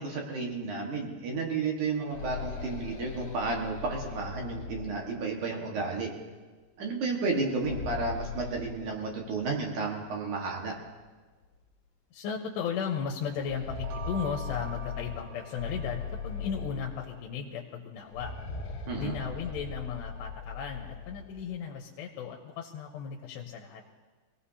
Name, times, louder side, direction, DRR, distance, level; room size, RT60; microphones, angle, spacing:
voice 1, 0.0-6.1 6.8-10.7 18.9-19.1, right 3 dB, 55° right, 0 dB, 2.7 m, -32 dB
sound 1, 1.8-5.6 7.4-9.6 9.9-10.0 10.8-10.9 11.4-11.6 13.2-17.4 18.0-21.4, left 4 dB, 60° left, 2.2 m, -40 dB
voice 2, 12.1-18.3 19.0-23.8, left 7 dB, 85° left, 0 dB, 3.1 m, -36 dB
sound 2, 13.7-16.4, right 8 dB, 85° right, 2.0 m, -45 dB
25.0 x 17.5 x 2.8 m, 1.3 s
omnidirectional pair, 4.7 m